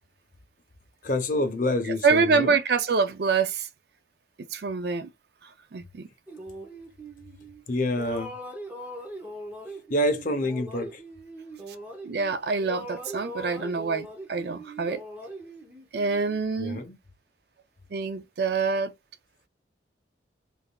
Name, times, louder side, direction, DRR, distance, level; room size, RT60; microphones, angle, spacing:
voice 1, 1.0-2.6 7.7-8.3 9.9-11.0 16.6-17.0, left 1 dB, 45° left, 0.6 m, -27 dB
voice 2, 2.0-3.7 4.5-5.1 5.7-6.1 12.0-15.0 15.9-16.8 17.9-18.9, right 5 dB, 55° right, 0.4 m, -26 dB
sound 1, 6.3-7.6 7.9-12.3 12.6-16.4, right 1 dB, 10° right, 0.7 m, -41 dB
3.5 x 3.3 x 2.2 m
head